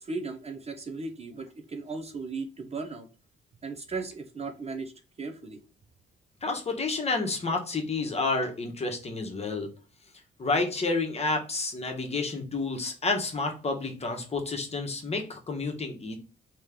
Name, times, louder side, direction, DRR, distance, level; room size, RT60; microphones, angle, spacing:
voice 1, 0.0-3.1 3.6-4.9 5.2-5.6, right 3 dB, 30° right, 5 dB, 0.6 m, -36 dB
voice 2, 6.4-9.7 10.4-16.2, left 3 dB, 30° left, 3 dB, 1.1 m, -30 dB
3.1 x 2.9 x 3.5 m, 0.34 s
cardioid pair, 90°, 20 cm